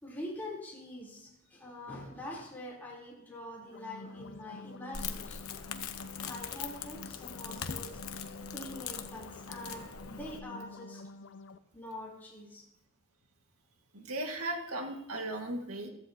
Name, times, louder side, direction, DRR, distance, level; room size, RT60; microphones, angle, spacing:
voice 1, 0.0-5.4 6.2-8.2 8.5-11.0 11.7-12.7, left 1 dB, 10° left, -6 dB, 3.6 m, -44 dB
sound 1, 3.6-11.6, left 3 dB, 60° left, 0.5 m, -49 dB
Crackle, 4.9-10.4, left 7 dB, 80° left, 1.0 m, -41 dB
voice 2, 13.9-15.9, right 1 dB, 85° right, 3 dB, 1.9 m, -36 dB
15.5 x 14.0 x 2.9 m, 0.84 s
head